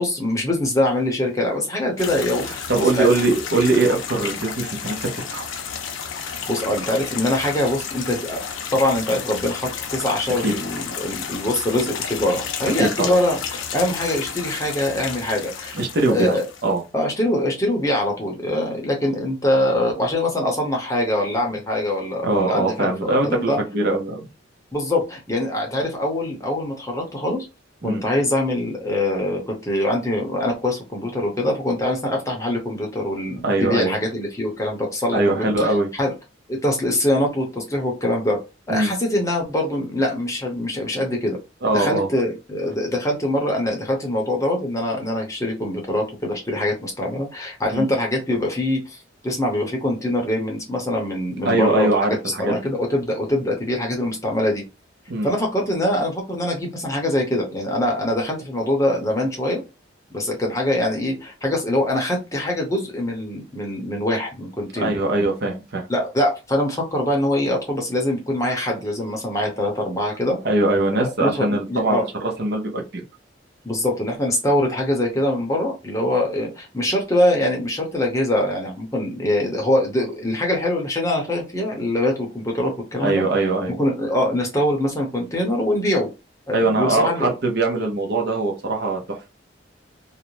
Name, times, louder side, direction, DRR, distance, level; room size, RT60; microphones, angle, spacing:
voice 1, 0.0-3.1 6.5-8.4 8.7-13.4 13.7-15.8 16.1-16.4 16.9-22.9 23.2-23.6 24.7-27.4 27.8-35.5 35.9-36.1 36.5-38.4 38.7-41.4 41.7-51.9 52.3-54.6 55.2-59.6 60.1-65.0 65.9-70.4 70.9-72.1 73.6-86.1 86.5-87.3, left 1 dB, 15° left, 0 dB, 0.7 m, -23 dB
sound 1, 2.0-16.8, left 7 dB, 85° left, 0.5 m, -32 dB
voice 2, 2.7-5.5 10.4-10.5 12.8-13.2 15.7-16.8 22.2-24.2 27.8-28.0 33.4-34.0 35.1-35.9 38.7-38.9 41.6-42.1 47.7-47.9 51.4-52.6 55.1-55.3 64.8-65.9 70.4-73.0 83.0-83.7 86.5-89.3, right 2 dB, 55° right, 1 dB, 0.7 m, -21 dB
2.5 x 2.1 x 3.0 m, 0.27 s
head